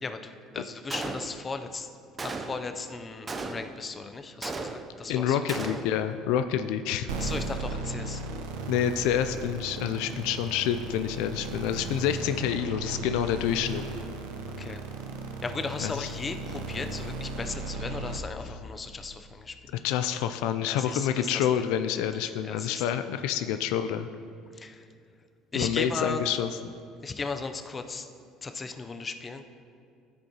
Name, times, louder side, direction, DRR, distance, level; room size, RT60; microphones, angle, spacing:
voice 1, 0.0-1.9 2.2-5.6 7.2-8.2 14.6-14.8 15.4-19.6 20.6-21.4 22.4-22.8 24.5-24.8 25.5-26.2 27.0-28.1 28.4-29.4, left 4 dB, 25° left, 8 dB, 0.5 m, -36 dB
Gunshot gunfire, 0.9-1.6 2.2-2.8 3.3-3.9 4.4-5.1 5.5-6.1, right 3 dB, 25° right, 0.5 m, -36 dB
voice 2, 5.1-7.1 8.7-13.8 15.8-16.1 19.8-24.1 25.5-26.5, left 9 dB, 80° left, 9 dB, 0.3 m, -28 dB
sound 1, 7.1-18.2, right 3 dB, 90° right, 0.8 m, -36 dB
13.0 x 5.4 x 2.9 m, 2.4 s
supercardioid pair, 100°, 0 cm